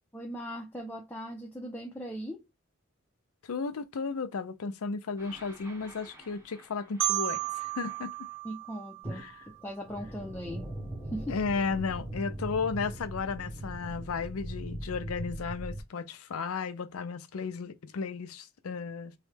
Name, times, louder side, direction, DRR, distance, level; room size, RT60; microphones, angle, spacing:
voice 1, 0.1-2.4 8.4-10.7 11.1-11.4, equal, 10° left, 0.5 m, -39 dB
voice 2, 3.4-8.3 9.1-9.4 11.3-19.1, left 5 dB, 85° left, 0.5 m, -34 dB
sound 1, 5.2-8.3 9.0-15.8, right 1 dB, 15° right, 0.9 m, -41 dB
Marimba xylophone, 7.0-9.8, right 18 dB, 65° right, 0.4 m, -34 dB
3.2 x 2.2 x 3.3 m
head